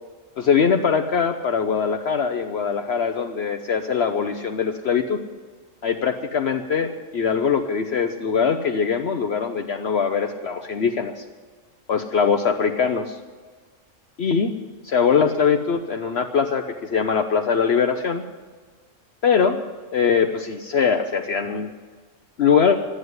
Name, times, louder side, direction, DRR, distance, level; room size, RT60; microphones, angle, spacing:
voice 1, 0.4-5.2 5.8-11.2 11.9-13.2 14.2-14.5 14.8-18.2 19.2-19.6 19.9-21.7 22.4-22.8, left 6 dB, 60° left, 6 dB, 1.0 m, -22 dB
12.5 x 9.9 x 9.4 m, 1.5 s
omnidirectional pair, 1.4 m